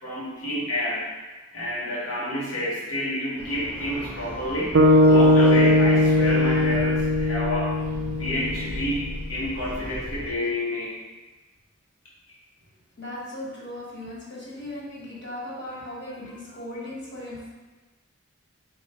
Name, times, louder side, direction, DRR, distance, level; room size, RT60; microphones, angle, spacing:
voice 1, 0.0-1.0 1.5-4.8 5.1-7.7 8.2-10.9, left 1 dB, 85° left, -6 dB, 0.9 m, -29 dB
sound 1, 3.4-10.3, equal, 10° right, 0.8 m, -37 dB
sound 2, 4.7-9.0, left 1 dB, 60° right, 0.4 m, -19 dB
voice 2, 13.0-17.5, left 1 dB, 50° left, -7 dB, 1.4 m, -37 dB
4.1 x 2.3 x 4.5 m, 1.2 s
head